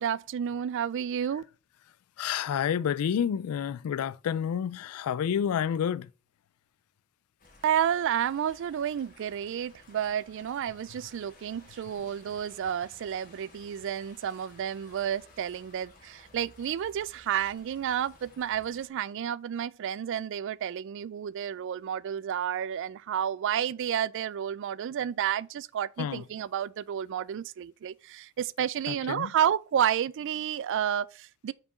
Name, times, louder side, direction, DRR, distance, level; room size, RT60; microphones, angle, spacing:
voice 1, 0.0-1.4 7.6-31.5, right 9 dB, 60° right, 0.3 m, -31 dB
voice 2, 2.2-6.1 26.0-26.2 28.9-29.3, left 8 dB, 90° left, 0.3 m, -29 dB
sound 1, 7.4-18.9, left 2 dB, 40° left, 2.1 m, -56 dB
5.7 x 4.5 x 5.0 m
head